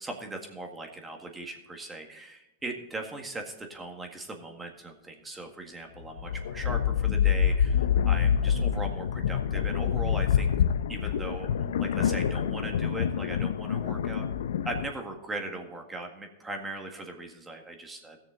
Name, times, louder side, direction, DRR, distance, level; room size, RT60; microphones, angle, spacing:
voice 1, 0.0-10.5 10.9-14.3 14.6-18.2, right 2 dB, 15° right, 3 dB, 1.7 m, -39 dB
sound 1, 6.0-14.9, left 8 dB, 85° left, 0.6 m, -26 dB
16.0 x 6.8 x 3.9 m, 0.98 s
hypercardioid pair, 130°, 0 cm